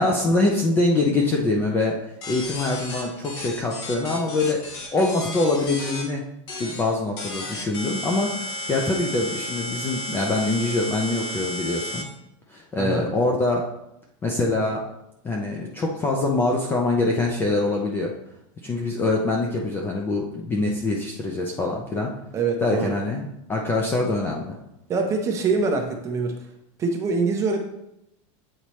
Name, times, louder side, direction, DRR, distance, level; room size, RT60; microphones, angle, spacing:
voice 1, 0.0-2.0 2.3-4.6 4.9-6.2 6.6-12.1 12.5-13.6 14.2-14.8 15.2-18.1 18.6-22.1 22.6-24.5, left 2 dB, 10° left, 0 dB, 0.4 m, -24 dB
sound 1, 2.2-6.0 6.5-6.8 7.2-12.0, left 1 dB, 55° left, 1.4 m, -33 dB
voice 2, 12.7-13.1 22.3-23.0 24.9-26.3 26.8-27.7, right 4 dB, 15° right, 2 dB, 0.7 m, -24 dB
8.3 x 4.2 x 3.0 m, 0.82 s
supercardioid pair, 170°, 17 cm